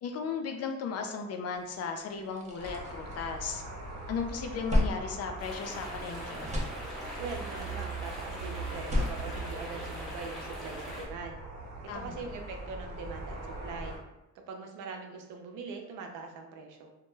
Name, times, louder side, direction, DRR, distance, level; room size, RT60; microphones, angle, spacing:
voice 1, 0.0-3.6 4.1-6.5 11.9-12.2, left 5 dB, 55° left, 4 dB, 0.4 m, -36 dB
sound 1, 1.7-1.8 2.1-3.8 4.2-6.0 6.3-7.4 8.6-10.3, left 1 dB, 25° right, 0.5 m, -33 dB
sound 2, 2.6-14.0, right 3 dB, 60° right, 0.9 m, -42 dB
sound 3, 5.4-11.1, equal, ahead, 0.9 m, -42 dB
voice 2, 7.2-11.4 11.9-14.0 14.5-16.9, right 4 dB, 85° right, 3 dB, 0.5 m, -42 dB
2.2 x 2.1 x 3.1 m, 0.98 s
cardioid pair, 90°, 30 cm